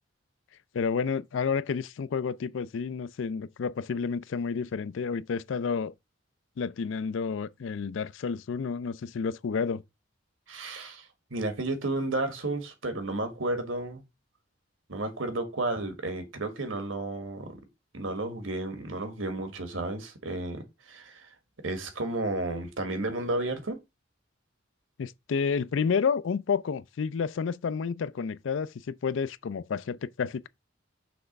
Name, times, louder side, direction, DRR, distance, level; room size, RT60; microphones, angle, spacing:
voice 1, 0.7-5.9 6.6-9.8 25.0-30.5, left 5 dB, 70° left, 0.4 m, -30 dB
voice 2, 10.5-14.0 14.9-17.6 17.9-21.3 21.6-23.8, right 2 dB, 80° right, 1.5 m, -32 dB
6.0 x 3.4 x 5.2 m
head